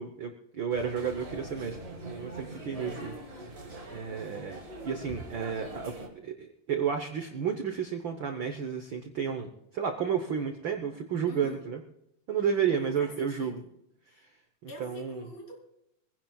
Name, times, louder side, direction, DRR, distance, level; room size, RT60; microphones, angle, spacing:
voice 1, 0.0-1.8 2.0-3.1 3.9-11.8 12.3-13.6 14.6-15.3, right 7 dB, 75° right, 5 dB, 1.1 m, -32 dB
sound 1, 0.7-6.1, right 2 dB, 25° right, 1.6 m, -43 dB
voice 2, 11.2-11.6 12.7-13.7 14.1-14.3 14.7-15.6, left 2 dB, 80° left, 0 dB, 4.8 m, -45 dB
23.5 x 16.0 x 2.4 m, 0.81 s
omnidirectional pair, 3.6 m